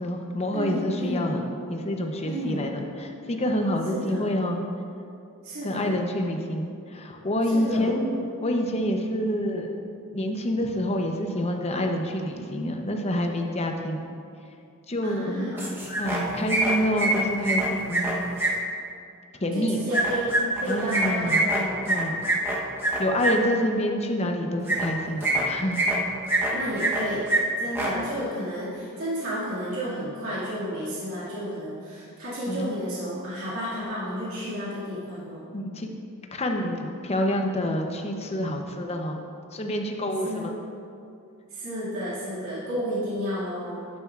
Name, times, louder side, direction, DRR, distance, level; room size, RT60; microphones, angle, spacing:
voice 1, 0.0-1.4 1.7-4.6 5.6-9.7 10.1-14.1 14.9-15.5 16.0-18.5 19.4-19.8 20.7-21.5 21.9-22.6 23.0-25.9 32.5-32.7 35.5-35.9 36.3-39.2 39.5-40.5, equal, 30° left, 3 dB, 0.7 m, -27 dB
voice 2, 0.5-1.3 2.2-2.7 3.9-4.3 5.4-6.0 7.5-8.0 15.0-15.8 19.5-21.8 26.5-27.3 27.6-35.5 40.2-40.5 41.5-43.9, equal, 65° right, -10 dB, 2.2 m, -32 dB
sound 1, 15.6-16.2 16.5-18.5 19.9-23.3 24.6-24.9 25.2-26.0 26.3-27.0 27.3-27.4 27.7-27.9, right 2 dB, 10° right, 1.0 m, -24 dB
11.5 x 8.9 x 2.4 m, 2.5 s
head